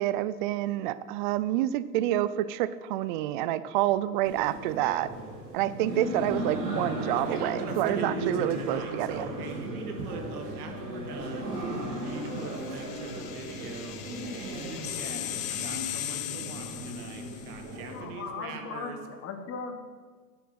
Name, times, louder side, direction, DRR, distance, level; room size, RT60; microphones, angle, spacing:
voice 1, 0.0-5.1 5.5-9.3, right 13 dB, 35° right, 16 dB, 0.4 m, -28 dB
sound 1, 4.2-18.1, equal, 80° right, 3.5 m, -36 dB
voice 2, 7.1-11.5 12.0-14.1 14.3-19.0, right 4 dB, 65° right, 4 dB, 2.0 m, -40 dB
sound 2, 11.7-17.6, left 13 dB, 55° left, 1.2 m, -38 dB
voice 3, 17.9-19.7, left 5 dB, 30° left, 6 dB, 1.6 m, -38 dB
10.0 x 8.6 x 5.9 m, 1.5 s
hypercardioid pair, 110°, 49 cm